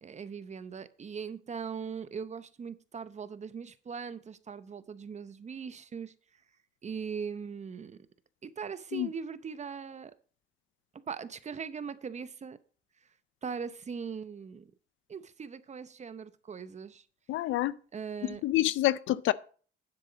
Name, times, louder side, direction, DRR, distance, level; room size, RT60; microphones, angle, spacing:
voice 1, 0.0-6.1 6.8-8.0 8.4-10.1 11.1-12.6 13.4-14.7 15.1-17.0 17.9-18.4, right 6 dB, 35° right, 0.7 m, -40 dB
voice 2, 17.3-17.7 18.4-19.3, left 15 dB, 80° left, 0.5 m, -27 dB
10.0 x 7.5 x 4.0 m
cardioid pair, 90°, 20 cm